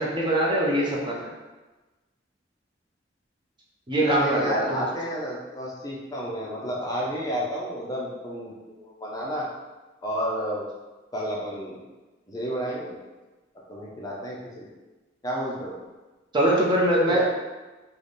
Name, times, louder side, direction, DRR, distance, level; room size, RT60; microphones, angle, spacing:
voice 1, 0.0-1.3 3.9-4.8 16.3-17.2, right 1 dB, 25° right, -3 dB, 0.6 m, -23 dB
voice 2, 4.0-9.5 10.0-10.6 11.1-11.8 12.3-13.0 13.7-14.7 15.2-15.8 17.1-17.2, equal, 20° left, -4 dB, 0.5 m, -31 dB
3.3 x 2.1 x 3.9 m, 1.2 s
head